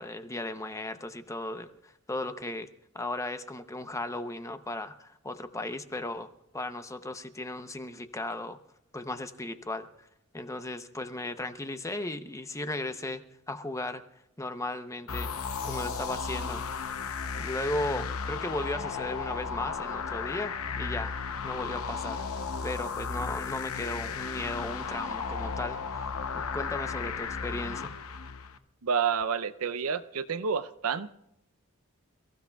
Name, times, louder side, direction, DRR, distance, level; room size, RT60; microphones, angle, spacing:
voice 1, 0.0-2.7 2.9-8.6 8.9-10.1 10.3-14.0 14.4-15.3 15.6-16.6 17.4-21.1 21.4-22.2 22.6-26.1 26.3-27.9, left 2 dB, 15° left, 9 dB, 0.7 m, -36 dB
sound 1, 15.1-28.6, left 5 dB, 70° left, 0.8 m, -35 dB
voice 2, 28.8-31.1, right 6 dB, 70° right, 14 dB, 0.6 m, -29 dB
28.0 x 15.5 x 2.3 m, 0.80 s
head